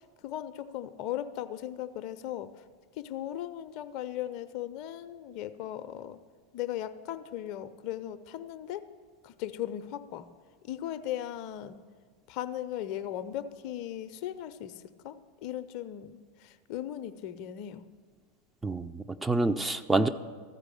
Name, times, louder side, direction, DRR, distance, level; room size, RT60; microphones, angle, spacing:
voice 1, 0.2-2.5 3.0-6.2 6.5-8.9 9.2-10.3 10.6-11.8 12.3-17.9, left 11 dB, 50° left, 12 dB, 0.5 m, -37 dB
voice 2, 18.6-20.1, right 2 dB, 10° right, 8 dB, 0.4 m, -27 dB
14.0 x 4.7 x 7.6 m, 1.5 s
figure-of-eight pair, 85°, 0 cm